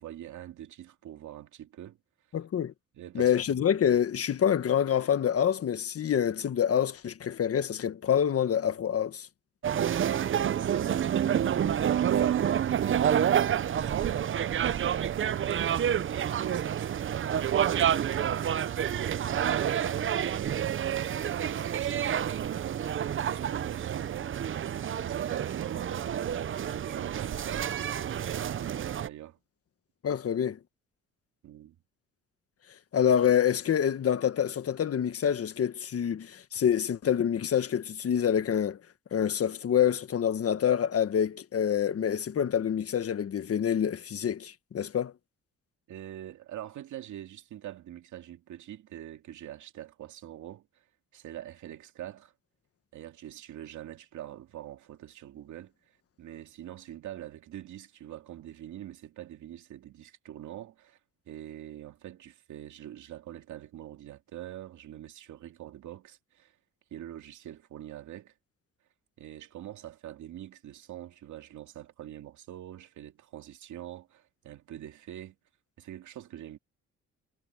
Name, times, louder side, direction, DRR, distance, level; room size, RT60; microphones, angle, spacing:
voice 1, 0.0-2.0 2.9-3.6 9.7-18.1 19.0-22.8 23.2-24.4 25.1-29.4 31.4-31.8 45.9-50.8 51.1-52.3 52.9-61.0 61.3-66.6 66.9-68.3 69.2-75.4 75.8-76.6, right 12 dB, 75° right, 2.4 m, -44 dB
voice 2, 2.3-2.7 3.1-9.3 30.0-30.6 32.9-38.8 39.1-45.1, left 9 dB, 50° left, 1.4 m, -26 dB
sound 1, 9.6-29.1, right 9 dB, 40° right, 0.7 m, -28 dB
cardioid pair, 90°, 30 cm